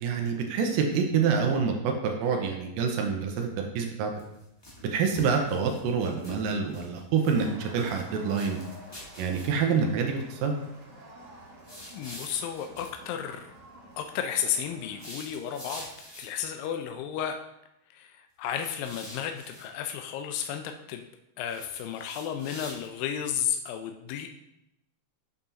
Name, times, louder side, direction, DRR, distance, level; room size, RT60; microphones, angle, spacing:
voice 1, 0.0-4.1 4.8-8.6 9.2-10.5, right 6 dB, 90° right, 3 dB, 2.4 m, -27 dB
sound 1, 4.1-4.8 5.1-7.0 7.2-8.0 8.3-9.7 11.6-12.9 14.8-16.4 18.5-19.7 21.4-23.1, left 1 dB, 20° left, 0.7 m, -46 dB
Crowd, 7.2-15.2, right 1 dB, 45° right, 1.5 m, -50 dB
voice 2, 11.9-13.5 14.0-15.9 16.2-17.4 17.9-21.0 21.4-24.3, left 9 dB, 85° left, 5 dB, 2.2 m, -33 dB
7.9 x 5.5 x 2.9 m, 0.85 s
omnidirectional pair, 3.9 m